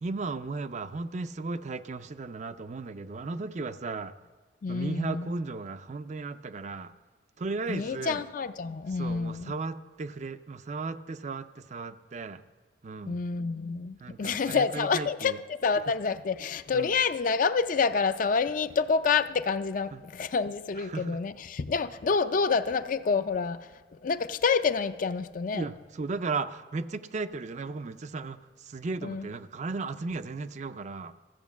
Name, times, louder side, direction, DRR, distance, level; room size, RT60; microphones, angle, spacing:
voice 1, 0.0-4.1 4.7-6.9 7.4-8.2 8.9-12.4 12.8-13.2 14.0-15.4 16.7-16.9 19.9-20.0 20.8-21.2 25.5-31.1, right 3 dB, 40° right, 0.4 m, -35 dB
voice 2, 4.6-5.3 7.7-9.5 13.1-23.6 24.0-25.6 29.0-29.3, left 5 dB, 45° left, 0.4 m, -28 dB
14.5 x 8.1 x 7.2 m
head